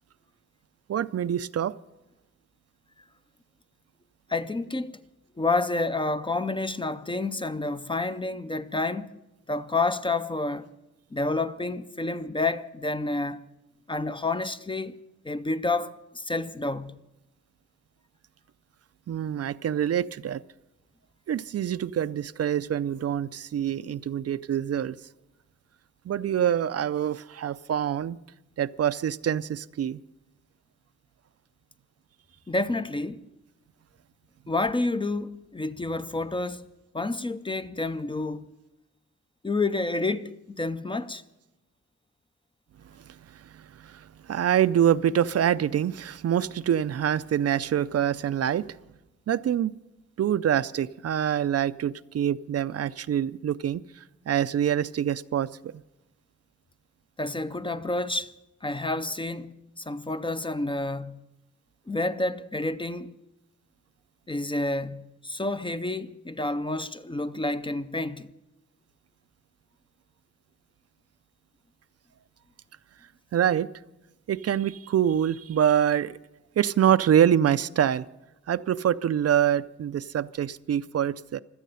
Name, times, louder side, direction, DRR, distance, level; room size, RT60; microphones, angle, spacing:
voice 1, 0.9-1.7 19.1-20.4 21.3-25.0 26.1-28.2 28.6-30.0 43.1-48.8 49.3-49.7 50.2-55.7 73.3-73.7 74.3-76.2 76.6-78.0 78.5-81.4, right 9 dB, 55° right, 0.4 m, -25 dB
voice 2, 4.3-5.0 5.4-9.1 9.5-10.7 11.1-13.4 13.9-14.9 15.2-17.0 32.5-33.2 34.5-36.7 36.9-38.5 39.4-41.2 57.2-58.3 58.6-61.2 61.9-63.1 64.3-68.3, left 2 dB, 20° left, 0.4 m, -29 dB
16.5 x 12.5 x 5.6 m
wide cardioid pair, 140°, 29 cm